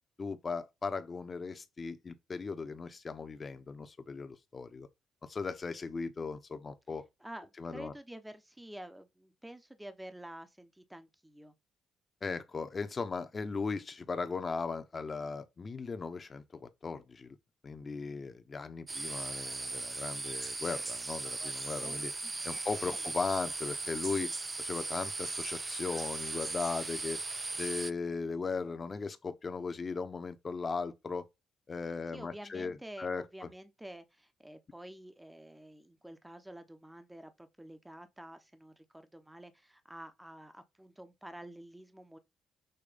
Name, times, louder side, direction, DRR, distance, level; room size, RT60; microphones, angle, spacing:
voice 1, 0.2-4.9 5.3-7.0 7.6-7.9 12.2-17.3 17.6-22.1 22.4-24.3 24.6-27.2 27.6-31.2 31.7-33.5, left 4 dB, 35° left, 1.1 m, -37 dB
voice 2, 7.2-11.5 21.8-23.0 32.1-42.2, right 1 dB, 10° right, 1.0 m, -49 dB
sound 1, 18.9-27.9, right 3 dB, 25° right, 0.5 m, -38 dB
6.9 x 3.1 x 5.1 m
cardioid pair, 90°, 0 cm